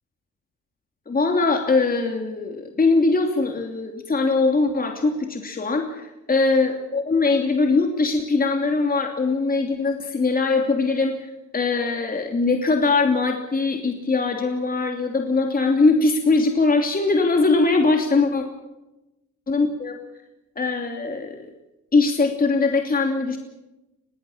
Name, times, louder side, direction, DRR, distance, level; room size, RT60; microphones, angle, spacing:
voice 1, 1.1-11.1 11.5-18.4 19.5-20.0 20.6-21.4 21.9-23.4, left 3 dB, 30° left, 3 dB, 2.9 m, -21 dB
22.5 x 18.5 x 7.3 m, 0.98 s
cardioid pair, 90°, 30 cm